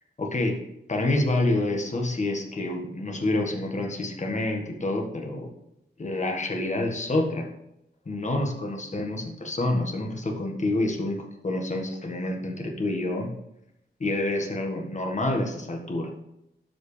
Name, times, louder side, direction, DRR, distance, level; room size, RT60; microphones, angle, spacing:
voice 1, 0.2-0.6 0.9-5.5 6.0-7.5 8.0-13.3 14.0-16.1, left 2 dB, 40° left, 2 dB, 1.5 m, -28 dB
12.0 x 5.0 x 3.3 m, 0.83 s
wide cardioid pair, 85°, 19 cm